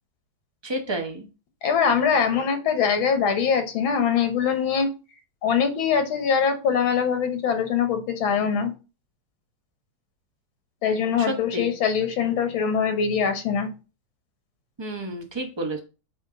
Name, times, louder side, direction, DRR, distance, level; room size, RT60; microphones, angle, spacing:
voice 1, 0.6-1.3 11.2-11.7 14.8-15.8, right 1 dB, 20° right, 3 dB, 0.7 m, -30 dB
voice 2, 1.6-4.9 5.4-8.7 10.8-13.7, left 6 dB, 90° left, 7 dB, 1.9 m, -23 dB
8.8 x 3.3 x 3.9 m, 0.32 s
omnidirectional pair, 2.1 m